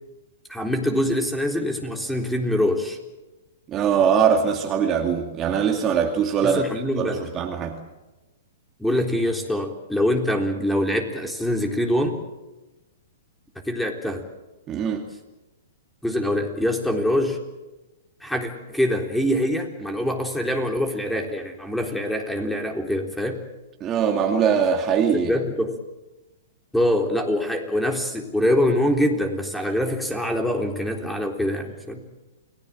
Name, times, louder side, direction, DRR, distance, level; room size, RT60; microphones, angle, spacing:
voice 1, 0.5-3.0 6.4-7.2 8.8-12.2 13.6-14.2 16.0-17.4 18.2-23.4 25.2-25.8 26.7-32.0, left 1 dB, ahead, 3 dB, 3.8 m, -24 dB
voice 2, 3.7-7.8 14.7-15.1 23.8-25.3, right 7 dB, 25° right, 3 dB, 2.4 m, -22 dB
29.0 x 19.0 x 7.7 m, 1.1 s
hypercardioid pair, 120°, 0 cm